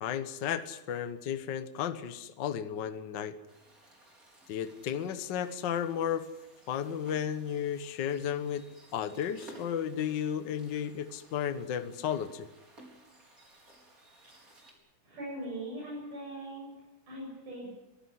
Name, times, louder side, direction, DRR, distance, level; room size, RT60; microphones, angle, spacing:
voice 1, 0.0-3.3 4.5-6.3 6.7-8.6 8.9-12.5, left 9 dB, 55° left, 10 dB, 1.2 m, -33 dB
sound 1, 3.5-14.7, right 1 dB, 25° right, 4.8 m, -57 dB
voice 2, 15.0-16.7 17.1-17.7, right 1 dB, 85° right, -5 dB, 9.5 m, -40 dB
22.5 x 16.0 x 9.6 m, 0.99 s
omnidirectional pair, 3.6 m